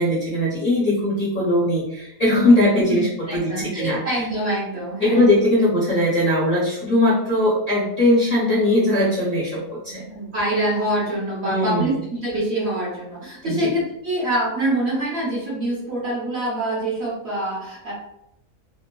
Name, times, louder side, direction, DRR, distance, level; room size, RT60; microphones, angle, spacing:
voice 1, 0.0-4.2 5.0-10.0 11.5-11.9 13.4-13.7, left 1 dB, 50° left, -7 dB, 0.6 m, -20 dB
voice 2, 3.3-5.3 8.4-8.6 9.9-17.9, right 1 dB, 55° right, -6 dB, 0.9 m, -25 dB
3.0 x 2.1 x 2.2 m, 0.79 s
omnidirectional pair, 1.6 m